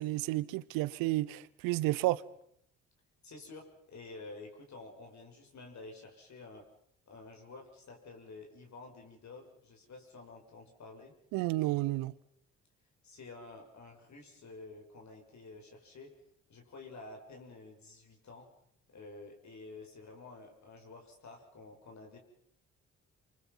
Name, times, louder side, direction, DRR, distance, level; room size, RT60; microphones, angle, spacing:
voice 1, 0.0-2.2 11.3-12.1, right 18 dB, 75° right, 0.9 m, -31 dB
voice 2, 3.2-6.7 7.1-11.1 13.0-16.1 16.5-18.5 18.9-22.2, left 3 dB, 55° left, 6.6 m, -50 dB
28.0 x 24.0 x 5.7 m
hypercardioid pair, 45°, 34 cm